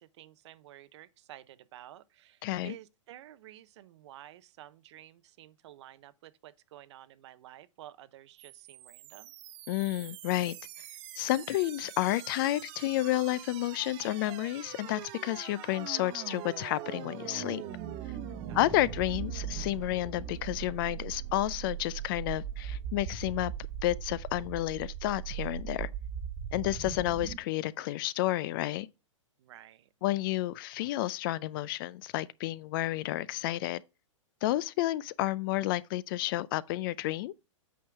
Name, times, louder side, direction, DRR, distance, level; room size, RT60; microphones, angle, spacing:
voice 1, 0.0-9.3 18.5-18.6 29.4-29.9, right 13 dB, 60° right, 0.7 m, -52 dB
voice 2, 2.4-2.7 9.7-10.6 11.2-17.6 18.5-23.5 23.8-25.9 26.5-28.9 30.0-33.8 34.4-37.3, left 16 dB, 45° left, 0.4 m, -31 dB
sound 1, 8.4-27.4, right 9 dB, 40° right, 1.0 m, -41 dB
8.5 x 5.5 x 3.4 m
hypercardioid pair, 140°, 17 cm